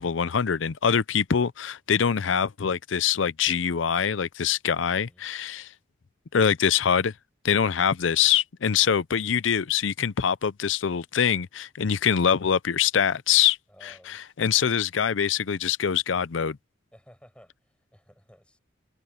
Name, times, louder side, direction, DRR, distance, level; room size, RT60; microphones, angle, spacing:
voice 1, 0.0-5.7 6.3-7.1 7.4-13.6 13.8-16.6, left 7 dB, 85° left, 0.6 m, -24 dB
voice 2, 4.9-5.3 8.7-8.9 13.7-14.6 16.9-18.6, equal, 5° left, 6.5 m, -56 dB
head